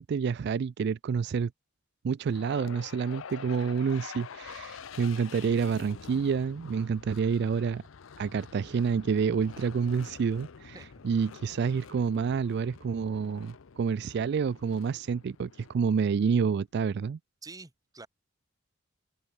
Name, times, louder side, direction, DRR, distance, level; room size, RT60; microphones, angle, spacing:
voice 1, 0.0-1.5 2.0-7.8 8.2-10.8 11.0-17.2, right 6 dB, 55° right, 0.3 m, -28 dB
sound 1, 2.3-16.4, left 6 dB, 75° left, 0.6 m, -47 dB
voice 2, 17.4-18.1, right 3 dB, 20° right, 1.0 m, -47 dB
head